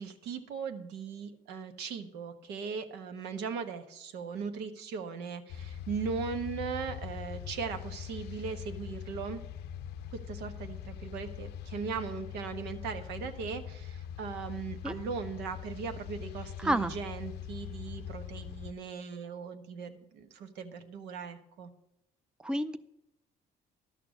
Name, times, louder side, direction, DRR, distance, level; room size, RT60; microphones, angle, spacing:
voice 1, 0.0-9.4 10.1-21.7, right 5 dB, 85° right, 7 dB, 1.3 m, -38 dB
sound 1, 5.5-18.7, left 9 dB, 85° left, 0.6 m, -42 dB
voice 2, 16.6-16.9 22.4-22.8, right 1 dB, 5° right, 11 dB, 0.5 m, -29 dB
12.0 x 6.8 x 6.4 m, 0.82 s
cardioid pair, 110°, 17 cm